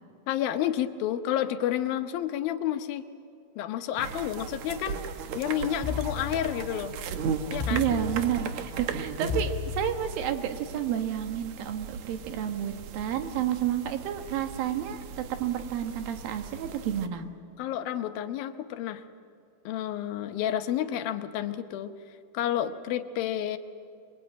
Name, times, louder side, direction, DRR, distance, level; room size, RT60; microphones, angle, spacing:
voice 1, 0.3-3.0 3.6-5.0 5.3-7.0 7.5-7.9 17.6-19.0 19.7-21.9 22.3-23.6, left 11 dB, 85° left, 9 dB, 2.8 m, -30 dB
sound 1, 4.0-17.1, right 6 dB, 65° right, 2.0 m, -37 dB
sound 2, 5.8-6.9 7.6-8.6 9.3-10.4, left 6 dB, 35° left, 4.2 m, -34 dB
voice 2, 7.7-17.2, right 10 dB, 80° right, 7 dB, 3.1 m, -30 dB
26.0 x 22.0 x 8.9 m, 2.4 s
omnidirectional pair, 4.1 m